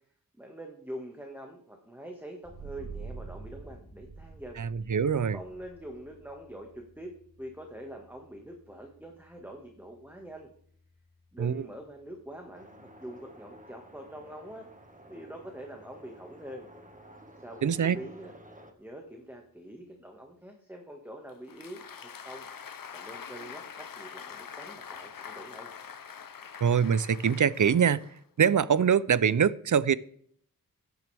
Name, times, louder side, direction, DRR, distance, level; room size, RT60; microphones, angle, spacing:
voice 1, 0.4-4.6 5.3-10.5 11.3-12.7 13.0-14.7 15.1-16.7 17.4-18.3 18.8-22.5 22.9-25.7, right 1 dB, 5° right, 1.7 m, -44 dB
sound 1, 2.4-13.7, right 4 dB, 20° left, 3.8 m, -49 dB
voice 2, 4.6-5.4 11.4-11.6 17.6-18.0 26.6-28.0 28.4-29.9, right 7 dB, 55° right, 0.5 m, -24 dB
sound 2, 12.5-18.7, right 1 dB, 20° right, 1.6 m, -52 dB
Applause, 21.3-28.4, left 7 dB, 70° left, 0.8 m, -44 dB
15.0 x 10.5 x 3.4 m
wide cardioid pair, 80°, 36 cm